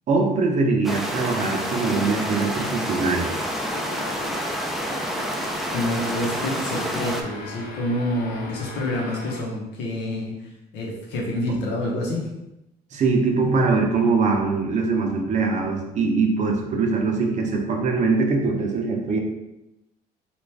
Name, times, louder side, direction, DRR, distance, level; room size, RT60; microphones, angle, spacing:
voice 1, 0.1-3.3 12.9-19.2, right 4 dB, 45° right, 2 dB, 0.6 m, -22 dB
sound 1, 0.8-7.2, equal, ahead, 0.3 m, -28 dB
sound 2, 3.3-9.4, left 3 dB, 60° left, 0.7 m, -38 dB
voice 2, 5.7-12.3, left 1 dB, 90° left, -2 dB, 0.9 m, -27 dB
3.0 x 2.5 x 3.3 m, 0.92 s
cardioid pair, 110°, 17 cm